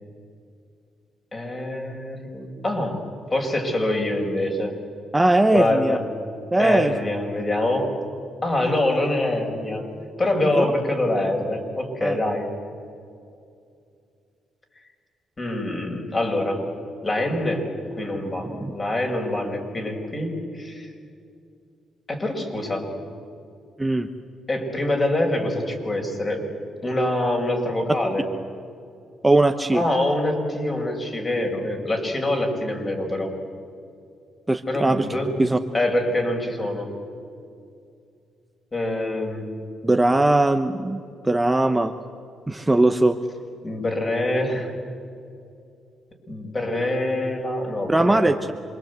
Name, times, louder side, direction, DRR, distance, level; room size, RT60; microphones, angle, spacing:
voice 1, 1.3-3.0 3.3-4.8 5.5-6.1 6.6-8.0 8.4-9.9 10.2-12.5 15.4-16.7 17.0-20.9 22.1-22.9 24.5-26.5 26.8-28.3 29.7-33.3 34.7-35.4 35.7-36.9 38.7-39.5 43.6-44.7 46.3-48.4, left 1 dB, 30° left, 2 dB, 5.3 m, -25 dB
voice 2, 5.1-6.0 6.5-6.9 10.6-10.7 12.0-12.2 18.6-18.7 23.8-24.1 29.2-29.8 34.5-35.1 35.4-35.6 39.8-41.9 42.5-43.2 47.9-48.4, right 2 dB, 10° right, 7 dB, 1.0 m, -19 dB
27.5 x 22.5 x 8.2 m, 2.5 s
cardioid pair, 90°, 0 cm